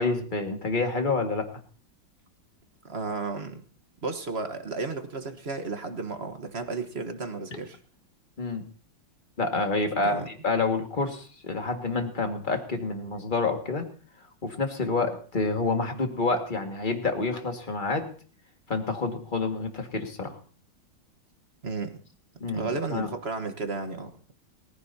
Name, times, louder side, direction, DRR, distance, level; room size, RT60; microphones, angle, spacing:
voice 1, 0.0-1.5 7.5-7.6 8.4-8.6 9.4-13.8 14.4-18.1 18.7-20.4 22.4-23.1, left 3 dB, 25° left, 4 dB, 1.9 m, -28 dB
voice 2, 2.8-3.6 4.0-7.8 10.0-10.3 21.6-22.0 22.5-24.3, right 4 dB, 35° right, 7 dB, 1.3 m, -33 dB
22.5 x 15.0 x 2.8 m, 0.43 s
omnidirectional pair, 2.2 m